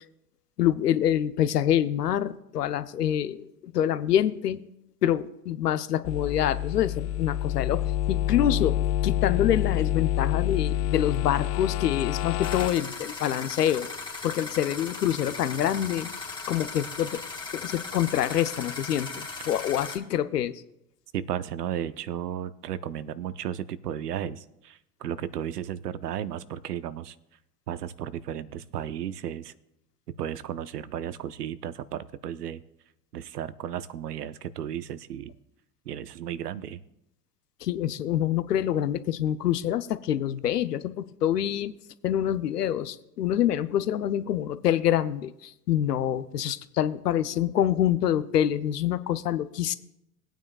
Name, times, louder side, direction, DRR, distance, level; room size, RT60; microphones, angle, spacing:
voice 1, 0.6-4.6 5.0-8.8 9.0-13.9 14.2-16.1 16.5-17.2 17.5-20.6 37.6-41.7 42.0-49.8, left 11 dB, 80° left, 13 dB, 0.7 m, -26 dB
sound 1, 6.0-12.7, left 13 dB, 35° left, 0.5 m, -27 dB
sound 2, 12.4-20.0, left 4 dB, 10° left, 2.3 m, -38 dB
voice 2, 21.1-27.1 27.7-29.5 30.1-32.6 33.1-35.3 35.9-36.8, right 10 dB, 80° right, 16 dB, 0.7 m, -34 dB
20.0 x 9.1 x 2.4 m, 0.82 s
hypercardioid pair, 85°, 47 cm